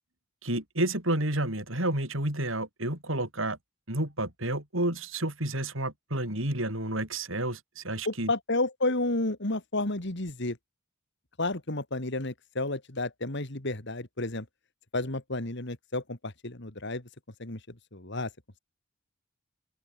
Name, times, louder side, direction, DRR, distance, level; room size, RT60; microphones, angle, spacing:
voice 1, 0.4-3.6 3.9-8.3, right 1 dB, 70° right, 7.8 m, -30 dB
voice 2, 8.0-10.6 11.4-14.5 14.9-17.0 17.4-17.6 17.9-18.3, left 2 dB, 55° left, 2.7 m, -31 dB
open air
head